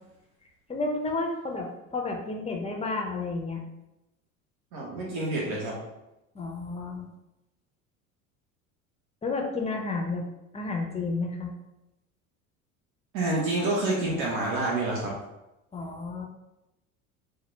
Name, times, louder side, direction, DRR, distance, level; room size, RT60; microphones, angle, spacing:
voice 1, 0.7-3.6 6.3-7.1 9.2-10.2 10.5-11.5 15.7-16.3, left 3 dB, 15° left, 2 dB, 0.6 m, -31 dB
voice 2, 4.7-5.7 13.1-15.1, right 2 dB, 60° right, -4 dB, 1.1 m, -28 dB
4.1 x 2.1 x 3.2 m, 0.93 s
hypercardioid pair, 75°, 42 cm